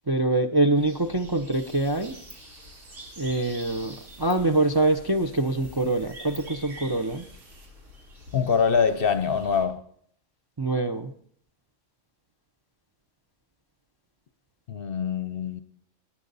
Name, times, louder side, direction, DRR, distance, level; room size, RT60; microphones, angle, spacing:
voice 1, 0.1-2.1 3.2-7.2 10.6-11.1, right 2 dB, 25° right, 0.5 m, -24 dB
sound 1, 0.8-9.7, equal, 80° right, 2.8 m, -47 dB
sound 2, 1.5-7.7, right 2 dB, 65° right, 2.2 m, -53 dB
voice 2, 8.3-9.8 14.7-15.6, left 6 dB, 55° left, 0.8 m, -24 dB
19.5 x 9.0 x 4.0 m
omnidirectional pair, 1.3 m